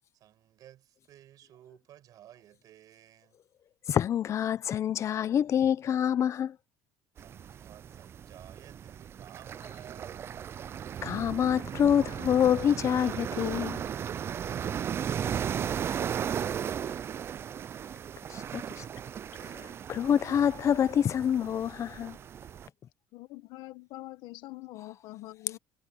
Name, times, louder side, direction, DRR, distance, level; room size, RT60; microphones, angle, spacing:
voice 1, 0.1-3.4 7.2-10.4 18.1-18.2, right 12 dB, 50° right, 6.0 m, -55 dB
voice 2, 3.9-6.6 11.0-13.8 18.3-18.8 19.5-22.2, left 9 dB, 40° left, 0.8 m, -27 dB
sound 1, 7.2-22.7, right 8 dB, 30° right, 0.4 m, -36 dB
voice 3, 23.1-25.6, left 18 dB, 70° left, 1.3 m, -44 dB
cardioid pair, 135°, 8 cm